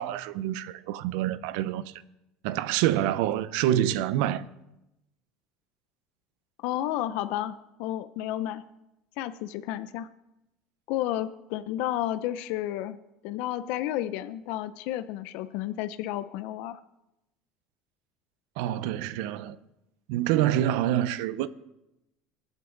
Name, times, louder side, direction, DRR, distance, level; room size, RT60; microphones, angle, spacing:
voice 1, 0.0-1.8 2.4-4.4 18.6-19.6 20.1-21.5, right 12 dB, 75° right, 0.7 m, -26 dB
voice 2, 6.6-8.6 9.2-10.1 10.9-13.0 13.2-16.8, left 13 dB, 70° left, 0.6 m, -31 dB
22.5 x 8.1 x 4.0 m
supercardioid pair, 120°, 2 cm